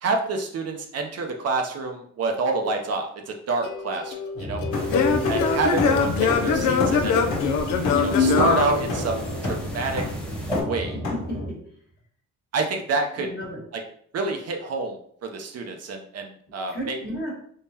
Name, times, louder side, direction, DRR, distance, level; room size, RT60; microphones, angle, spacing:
voice 1, 0.0-4.6 5.3-7.2 7.9-10.0 10.6-10.9 12.5-13.3 14.1-17.0, right 3 dB, 55° right, 3 dB, 0.6 m, -28 dB
Singing / Plucked string instrument, 3.6-9.5, left 5 dB, 85° left, 0.6 m, -23 dB
sound 1, 4.3-11.5, left 1 dB, 65° left, 1.3 m, -30 dB
voice 2, 4.7-5.2 10.9-11.6 13.2-13.6 16.5-17.3, equal, 35° left, -2 dB, 1.5 m, -34 dB
sound 2, 4.7-10.6, equal, 5° left, 0.9 m, -37 dB
3.6 x 3.1 x 2.8 m, 0.63 s
cardioid pair, 90°, 30 cm